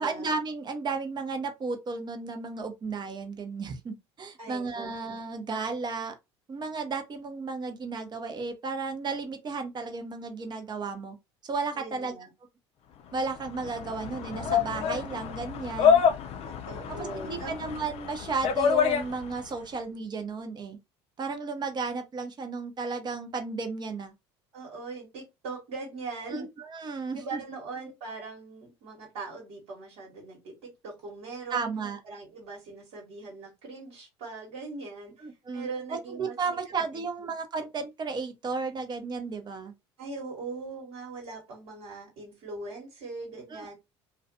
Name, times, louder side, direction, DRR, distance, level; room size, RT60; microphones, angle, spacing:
voice 1, 0.0-6.1 6.5-11.2 11.4-12.1 13.1-16.0 17.0-20.8 21.2-24.1 26.3-27.4 31.5-32.0 35.2-35.7 36.2-39.7 43.5-43.7, right 4 dB, 30° right, 0.7 m, -34 dB
voice 2, 4.4-4.9 11.7-12.3 16.5-17.7 24.5-26.5 27.1-31.7 32.0-35.3 35.5-36.3 36.9-37.0 40.0-43.7, right 3 dB, 65° right, 1.2 m, -40 dB
sound 1, 13.2-19.5, left 7 dB, 45° left, 0.5 m, -27 dB
2.4 x 2.2 x 2.6 m
hypercardioid pair, 65°, 14 cm